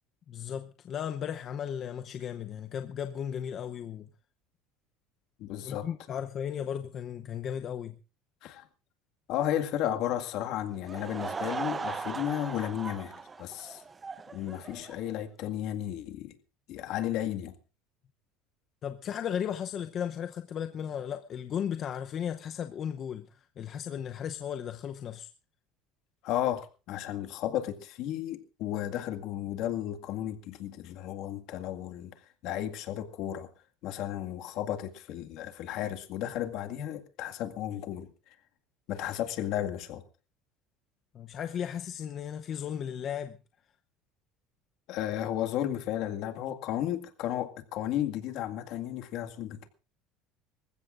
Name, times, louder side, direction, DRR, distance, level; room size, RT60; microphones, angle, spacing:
voice 1, 0.3-4.1 5.6-8.0 18.8-25.3 41.1-43.4, left 8 dB, 40° left, 0.8 m, -35 dB
voice 2, 5.4-5.9 8.4-8.7 9.3-13.8 14.3-16.4 16.7-17.5 26.2-32.1 32.4-33.5 33.8-38.1 38.9-40.0 44.9-49.7, left 11 dB, 60° left, 2.0 m, -33 dB
Laughter / Crowd, 10.7-15.2, right 4 dB, 20° right, 0.7 m, -38 dB
26.5 x 15.0 x 2.6 m
cardioid pair, 140°, 0 cm